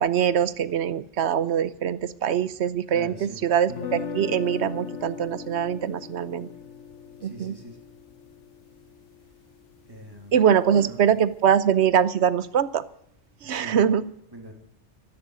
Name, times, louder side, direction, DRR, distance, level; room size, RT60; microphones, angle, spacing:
voice 1, 0.0-6.5 7.2-7.5 10.3-12.8 13.4-14.0, right 8 dB, 70° right, 16 dB, 1.0 m, -23 dB
voice 2, 2.9-3.4 7.2-7.8 9.9-10.4 10.7-11.0 13.4-13.8 14.3-14.5, right 1 dB, 20° right, 1 dB, 3.2 m, -42 dB
sound 1, 3.7-9.7, left 6 dB, 85° left, 1.2 m, -38 dB
13.0 x 9.9 x 9.4 m, 0.76 s
omnidirectional pair, 1.2 m